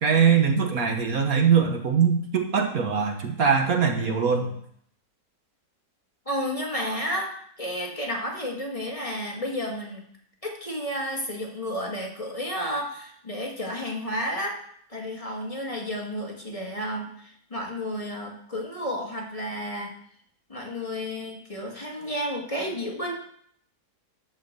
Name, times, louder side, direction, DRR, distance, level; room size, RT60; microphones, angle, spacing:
voice 1, 0.0-4.5, right 6 dB, 65° right, 4 dB, 1.6 m, -22 dB
voice 2, 6.3-7.3 7.6-10.0 10.4-14.6 14.9-19.9 20.5-23.1, equal, 20° left, -2 dB, 1.9 m, -31 dB
12.5 x 5.2 x 6.7 m, 0.65 s
omnidirectional pair, 1.7 m